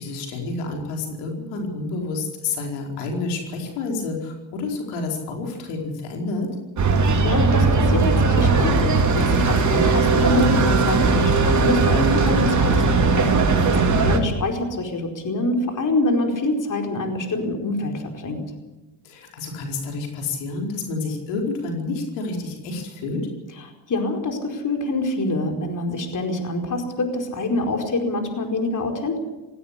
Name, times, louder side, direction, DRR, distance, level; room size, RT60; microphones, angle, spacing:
voice 1, 0.0-6.5 13.5-14.0 19.0-23.2, left 3 dB, 85° left, 1 dB, 4.9 m, -29 dB
sound 1, 6.8-14.2, right 3 dB, 35° right, 3.8 m, -18 dB
voice 2, 7.2-13.1 13.7-18.4 23.6-29.2, left 2 dB, 40° left, 3 dB, 4.7 m, -25 dB
17.5 x 17.0 x 10.0 m, 1.1 s
supercardioid pair, 75°, 49 cm